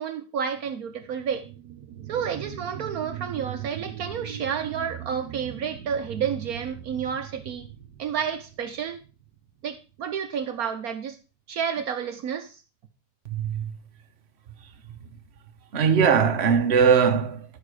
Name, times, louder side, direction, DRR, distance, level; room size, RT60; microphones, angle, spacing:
voice 1, 0.0-1.5 2.1-7.7 8.0-9.0 9.6-11.2 11.5-12.6, right 7 dB, 65° right, 1.2 m, -30 dB
sound 1, 0.9-10.0 10.4-10.5, right 11 dB, 85° right, 1.4 m, -40 dB
voice 2, 13.3-13.6 15.7-17.4, right 6 dB, 45° right, 1.1 m, -20 dB
11.5 x 5.7 x 4.8 m
omnidirectional pair, 1.7 m